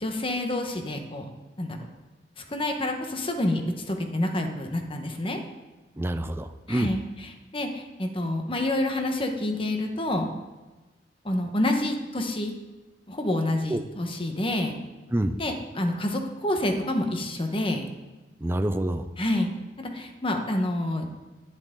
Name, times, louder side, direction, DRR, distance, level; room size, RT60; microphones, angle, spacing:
voice 1, 0.0-1.3 1.6-1.8 2.5-3.6 3.9-5.4 6.7-7.0 7.5-10.3 11.2-12.5 13.1-14.7 15.4-17.9 19.2-19.5 19.8-21.1, left 1 dB, 30° left, 4 dB, 1.2 m, -28 dB
voice 2, 6.0-6.9 13.7-13.8 15.1-15.4 18.4-19.1, right 1 dB, 15° right, 9 dB, 0.5 m, -27 dB
10.5 x 10.5 x 3.8 m, 1.2 s
head